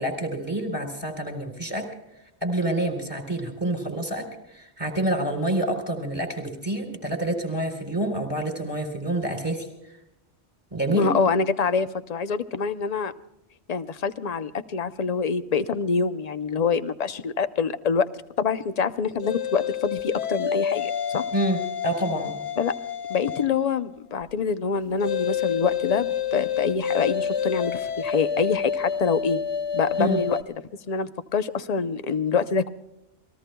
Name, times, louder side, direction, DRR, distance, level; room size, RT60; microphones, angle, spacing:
voice 1, 0.0-1.9 2.4-9.7 10.7-11.1 21.3-22.3 30.0-30.2, right 1 dB, 20° right, 3 dB, 3.7 m, -27 dB
voice 2, 10.9-13.1 13.7-18.1 18.4-21.2 22.6-22.7 23.1-29.4 29.7-30.4 30.9-32.7, left 5 dB, 45° left, 12 dB, 0.7 m, -25 dB
sound 1, 19.2-23.6 25.0-30.4, left 8 dB, 70° left, 1.1 m, -28 dB
28.5 x 20.0 x 2.3 m, 0.89 s
omnidirectional pair, 1.1 m